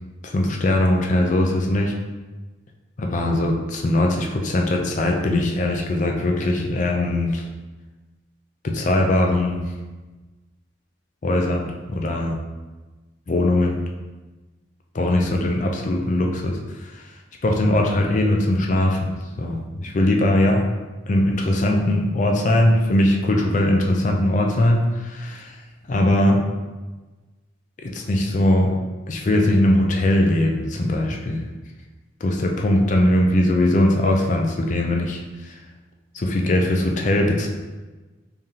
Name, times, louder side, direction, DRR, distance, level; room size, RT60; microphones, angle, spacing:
voice 1, 0.2-1.9 3.0-7.4 8.6-9.6 11.2-12.4 13.3-13.8 14.9-17.0 17.4-20.6 21.1-25.6 25.9-26.4 27.8-28.7 29.1-31.4 32.2-35.6 36.1-37.5, left 1 dB, 40° left, 2 dB, 0.4 m, -20 dB
3.8 x 3.3 x 2.7 m, 1.2 s
head